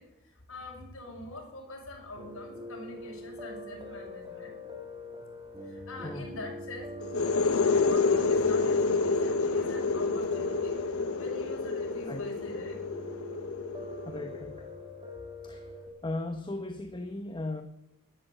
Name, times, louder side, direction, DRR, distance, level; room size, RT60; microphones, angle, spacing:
voice 1, 0.0-4.6 5.6-6.9 7.7-10.8 11.2-12.8, left 2 dB, 65° left, -2 dB, 6.0 m, -44 dB
Piano, 2.2-15.9, left 2 dB, 20° right, 2.2 m, -43 dB
sound 1, 7.0-14.6, left 4 dB, 80° left, 1.2 m, -28 dB
voice 2, 14.0-14.6 15.4-15.7 16.0-17.6, left 2 dB, 20° left, 7 dB, 1.0 m, -37 dB
15.5 x 11.0 x 7.9 m, 0.87 s
head